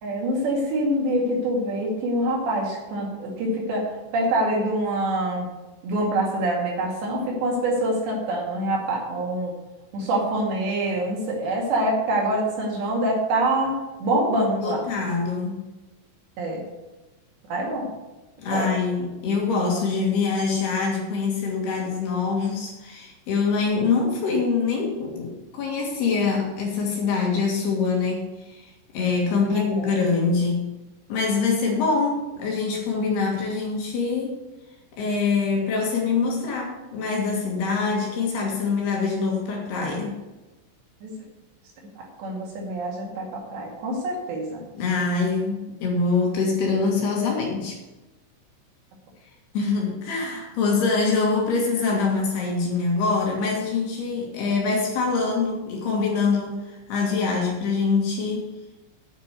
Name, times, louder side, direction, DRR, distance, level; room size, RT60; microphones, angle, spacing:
voice 1, 0.0-5.5 5.8-9.5 9.9-14.9 16.4-16.6 17.5-17.9 18.5-18.7 29.4-30.0 41.0-41.1 42.0-44.6, right 1 dB, 65° right, -2 dB, 4.2 m, -25 dB
voice 2, 14.5-15.6 18.4-28.7 28.9-30.7 31.1-34.4 35.0-40.1 44.7-47.8 49.5-58.5, left 4 dB, 60° left, -1 dB, 3.5 m, -24 dB
9.4 x 6.7 x 8.1 m, 1.1 s
omnidirectional pair, 5.7 m